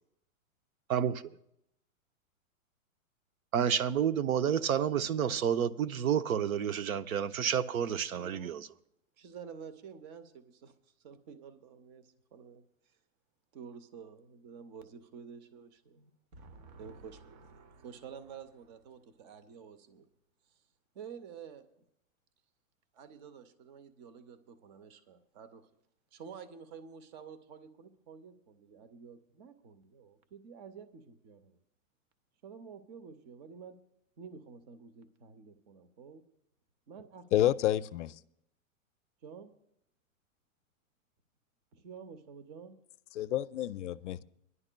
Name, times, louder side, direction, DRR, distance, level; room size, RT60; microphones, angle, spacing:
voice 1, 0.9-1.2 3.5-8.7, right 8 dB, 85° right, 0.8 m, -30 dB
voice 2, 8.1-8.6 9.2-13.0 13.5-20.1 20.5-20.6 20.9-21.7 22.9-25.7 26.1-31.6 32.4-33.8 34.2-36.2 36.9-37.5 39.2-39.5 41.7-42.8, right 6 dB, 35° right, 0.7 m, -50 dB
voice 3, 37.3-38.2 43.2-44.2, left 12 dB, 60° left, 0.5 m, -29 dB
24.5 x 11.0 x 2.2 m
hypercardioid pair, 160°, 41 cm